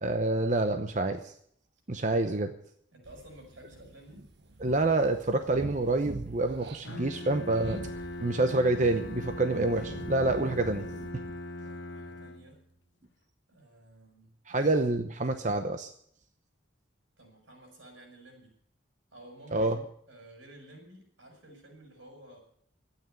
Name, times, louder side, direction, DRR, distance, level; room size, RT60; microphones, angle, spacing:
voice 1, 0.0-1.3 1.9-2.5 4.6-7.8 8.2-10.9 14.5-15.9 19.5-19.8, right 2 dB, 40° right, 7 dB, 0.8 m, -27 dB
voice 2, 2.9-4.3 8.3-8.6 11.6-12.6 13.5-14.6 17.2-18.5 19.1-19.7 20.1-22.4, right 1 dB, 90° right, 2 dB, 6.8 m, -53 dB
sound 1, 3.0-11.1, right 1 dB, 60° right, 1.3 m, -45 dB
Bowed string instrument, 6.8-12.7, left 1 dB, 75° left, 1.2 m, -40 dB
12.5 x 9.3 x 9.2 m, 0.64 s
head